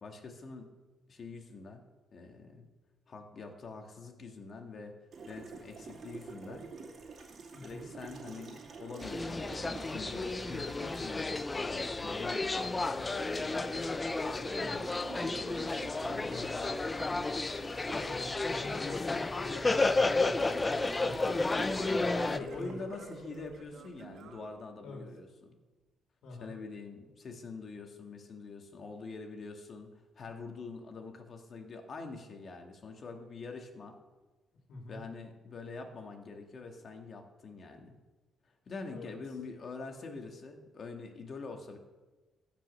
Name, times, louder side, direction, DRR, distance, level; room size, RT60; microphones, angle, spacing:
voice 1, 0.0-0.7 1.1-1.8 2.1-2.7 3.1-5.0 5.3-6.7 7.6-13.7 16.1-16.4 17.1-17.3 21.9-25.6 26.4-34.0 34.9-38.0 38.7-41.8, left 4 dB, 50° left, 4 dB, 1.8 m, -45 dB
Water tap faucet, 5.1-24.3, right 4 dB, 55° right, 2.4 m, -48 dB
voice 2, 7.5-7.9 14.6-15.1 16.1-16.7 17.9-21.5 22.3-22.8 24.8-25.1 26.2-26.5 34.7-35.0 38.9-39.1, left 2 dB, 75° left, 1 dB, 3.0 m, -46 dB
sound 1, 9.0-22.4, left 3 dB, 25° left, 0.5 m, -32 dB
Singing / Plucked string instrument, 20.5-25.4, right 6 dB, 75° right, 1.2 m, -56 dB
15.0 x 5.4 x 6.3 m, 1.2 s
cardioid pair, 90°, 0 cm